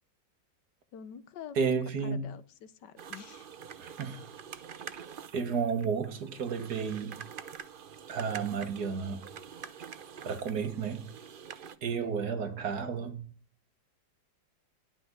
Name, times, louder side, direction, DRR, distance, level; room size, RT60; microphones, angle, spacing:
voice 1, 0.9-1.6 2.0-3.5, left 8 dB, 70° left, 1.4 m, -46 dB
voice 2, 1.6-2.3 3.8-4.3 5.3-7.2 8.1-9.2 10.2-11.1 11.8-13.3, right 6 dB, 60° right, 1.8 m, -32 dB
sound 1, 3.0-11.8, right 7 dB, 80° right, 0.4 m, -46 dB
11.0 x 6.1 x 8.0 m
omnidirectional pair, 2.0 m